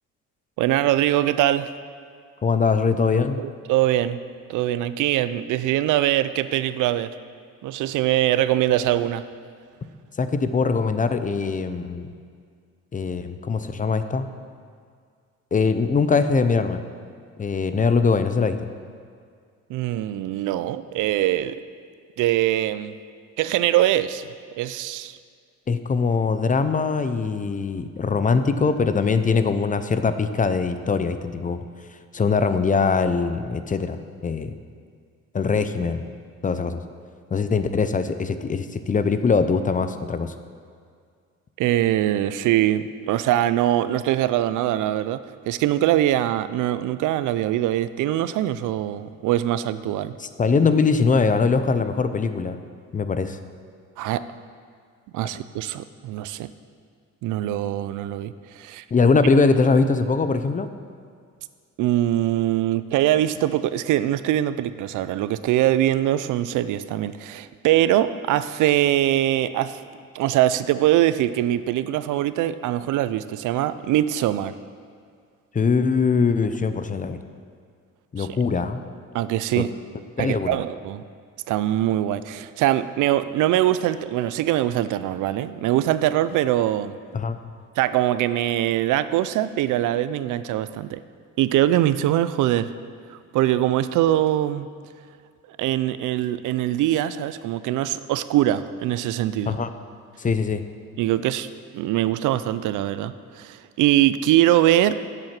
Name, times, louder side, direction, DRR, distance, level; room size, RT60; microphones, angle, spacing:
voice 1, 0.6-1.7 3.4-4.2 4.5-7.1 7.6-9.2 19.7-21.6 22.2-23.0 23.4-25.2 41.6-45.2 45.5-50.1 54.0-54.2 55.1-56.5 57.2-58.8 61.8-69.8 70.1-74.6 78.2-78.3 79.1-79.7 80.2-81.0 81.5-86.9 87.8-91.0 91.4-92.7 93.1-94.7 95.6-99.6 101.0-101.5 101.7-104.9, right 13 dB, 80° right, 14 dB, 0.5 m, -22 dB
voice 2, 2.4-3.4 10.2-12.1 12.9-14.3 15.5-16.8 17.4-18.6 25.7-31.6 32.1-34.0 34.2-34.5 35.3-36.0 36.4-36.8 37.3-40.3 50.2-52.6 52.9-53.4 58.9-60.7 75.5-77.2 78.1-78.8 79.6-79.7 80.2-80.6 87.1-87.4 99.5-99.7 100.2-100.6, left 4 dB, 25° left, 10 dB, 0.5 m, -22 dB
7.6 x 7.4 x 6.0 m, 2.1 s
cardioid pair, 90°, 30 cm